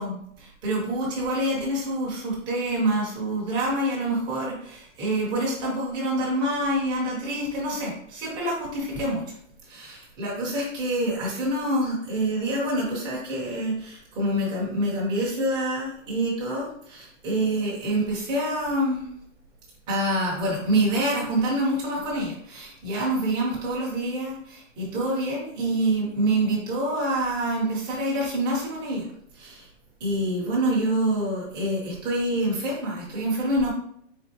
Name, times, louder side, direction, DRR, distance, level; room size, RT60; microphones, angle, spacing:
voice 1, 0.0-9.2 9.6-19.1 19.9-29.1 29.3-29.7 30.0-33.7, right 1 dB, 10° right, -5 dB, 0.9 m, -26 dB
4.3 x 4.0 x 2.8 m, 0.69 s
hypercardioid pair, 170°, 39 cm